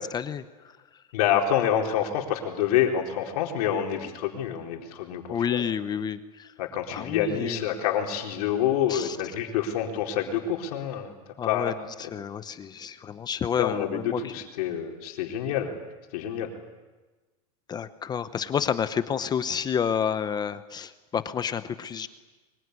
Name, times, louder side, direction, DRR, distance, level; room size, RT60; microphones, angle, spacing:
voice 1, 0.1-0.4 5.3-6.5 6.9-7.6 8.9-9.2 11.4-14.3 17.7-22.1, left 7 dB, 20° left, 12 dB, 0.9 m, -30 dB
voice 2, 1.1-5.2 5.5-5.6 6.6-11.2 11.4-11.7 13.6-15.7 16.1-16.5, left 9 dB, 75° left, 2 dB, 4.3 m, -27 dB
24.5 x 23.5 x 9.8 m, 1.2 s
supercardioid pair, 150°, 20 cm